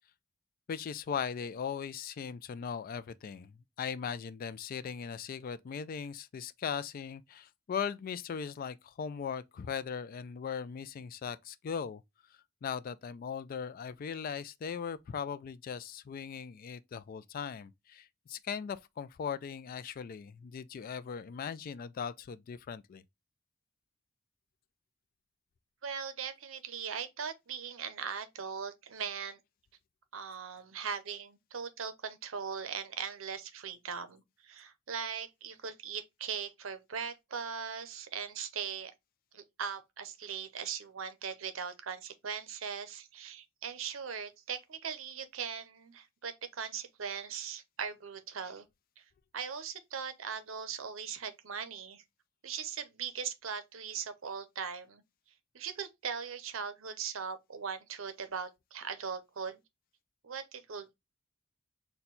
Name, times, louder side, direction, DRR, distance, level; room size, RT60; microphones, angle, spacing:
voice 1, 0.7-12.0 12.6-23.0, left 7 dB, 45° left, 0.3 m, -39 dB
voice 2, 25.8-29.4 30.1-38.9 39.3-48.6 49.0-49.1 49.3-52.0 52.4-55.0 55.5-59.6 60.2-60.9, right 6 dB, 70° right, 0.7 m, -40 dB
4.3 x 2.2 x 3.8 m
head